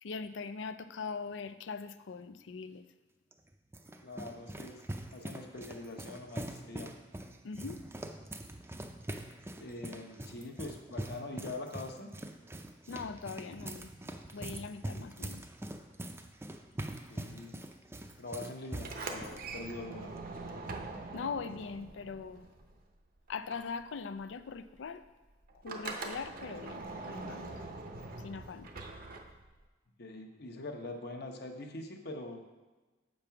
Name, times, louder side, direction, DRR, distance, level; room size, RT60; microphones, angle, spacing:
voice 1, 0.0-2.8 7.4-7.8 12.9-13.9 14.3-15.4 21.1-22.5 23.3-25.0 25.6-27.5 28.2-28.7, left 5 dB, 85° left, 12 dB, 0.4 m, -41 dB
sound 1, 3.3-19.4, right 1 dB, 15° right, 0.5 m, -43 dB
voice 2, 4.0-4.8 5.1-6.9 9.6-12.1 17.1-17.6 18.2-20.1 30.0-32.4, left 2 dB, 60° left, 3 dB, 0.9 m, -43 dB
Sliding door, 18.7-23.0 23.3-29.7, right 3 dB, 50° right, 0.7 m, -43 dB
7.1 x 5.2 x 5.7 m, 1.2 s
head